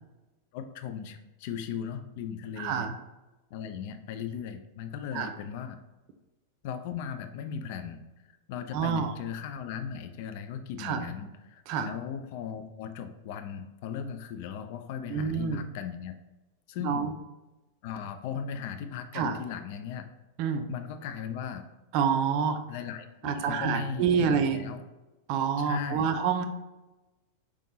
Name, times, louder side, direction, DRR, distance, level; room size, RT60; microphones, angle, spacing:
voice 1, 0.5-2.9 3.5-5.8 6.6-16.1 16.7-17.1 17.8-20.1 20.7-21.6 22.7-24.8 25.6-26.1, left 7 dB, 50° left, 8 dB, 0.4 m, -37 dB
voice 2, 2.6-3.0 5.1-5.3 8.7-9.1 10.8-11.1 11.7-11.9 15.1-15.7 16.8-17.1 19.1-19.4 20.4-20.7 21.9-22.6 23.2-24.6 25.3-26.4, right 6 dB, 45° right, 8 dB, 0.4 m, -27 dB
4.6 x 3.5 x 2.8 m, 1.1 s
figure-of-eight pair, 90°, 0 cm